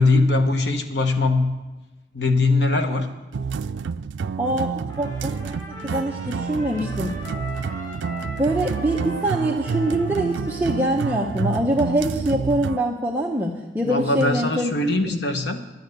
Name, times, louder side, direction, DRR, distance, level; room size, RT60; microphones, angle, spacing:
voice 1, 0.0-1.5 2.1-3.1 13.8-15.6, left 2 dB, 75° left, 6 dB, 1.1 m, -21 dB
sound 1, 3.3-12.8, right 5 dB, 85° right, 0.4 m, -29 dB
voice 2, 4.4-4.7 5.0-7.2 8.4-14.7 15.0-15.2, right 1 dB, 10° right, -2 dB, 0.8 m, -24 dB
Trumpet, 4.9-11.6, equal, 30° left, 3.8 m, -40 dB
11.0 x 9.3 x 6.6 m, 1.1 s
head